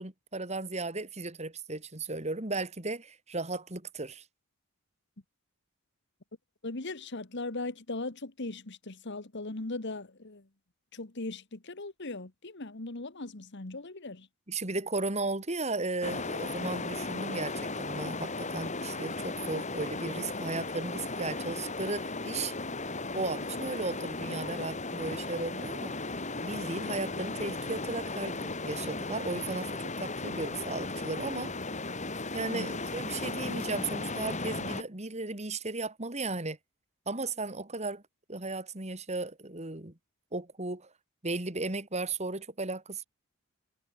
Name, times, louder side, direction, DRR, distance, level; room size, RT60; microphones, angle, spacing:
voice 1, 0.0-4.2 14.5-22.5 23.1-26.1 26.4-31.5 32.3-36.6 37.1-38.0 38.3-39.9 40.3-40.9 41.2-43.1, right 3 dB, 30° right, 2.5 m, -35 dB
voice 2, 6.6-10.4 10.9-14.3 32.5-32.7, left 2 dB, 55° left, 1.5 m, -39 dB
sound 1, 16.0-34.8, left 3 dB, 35° left, 3.9 m, -36 dB
head